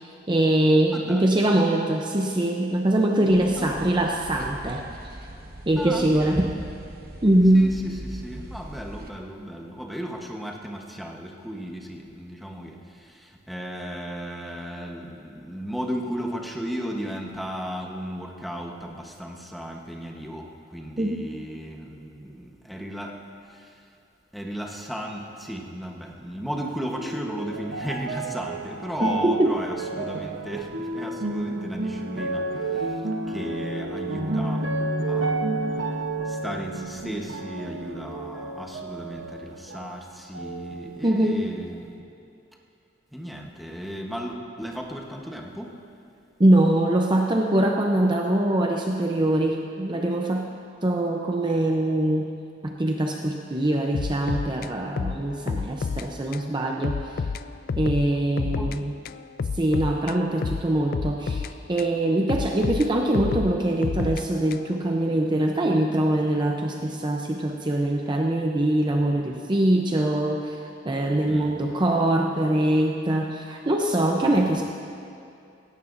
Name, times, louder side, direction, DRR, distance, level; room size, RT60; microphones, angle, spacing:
voice 1, 0.3-4.8 5.7-6.5 7.2-7.7 21.0-21.2 29.0-29.5 41.0-41.5 46.4-50.5 50.8-52.3 52.6-57.2 57.8-59.0 59.5-74.6, right 1 dB, 25° right, 1 dB, 0.6 m, -23 dB
voice 2, 0.9-1.3 3.6-3.8 5.8-6.5 7.5-23.1 23.5-23.7 24.3-34.7 35.0-35.4 36.3-41.9 43.1-45.8 58.4-58.7 71.3-71.7 74.2-74.5, equal, ahead, 0 dB, 1.1 m, -35 dB
sound 1, 3.3-9.1, right 1 dB, 55° right, 1.2 m, -41 dB
sound 2, 26.5-40.0 40.3-41.3 42.0-42.1, right 2 dB, 75° right, 1.0 m, -31 dB
sound 3, 53.9-56.1 56.3-56.5 56.8-58.8 59.1-61.9 62.3-64.8, left 5 dB, 55° left, 0.3 m, -30 dB
17.0 x 16.5 x 2.6 m, 2.5 s
head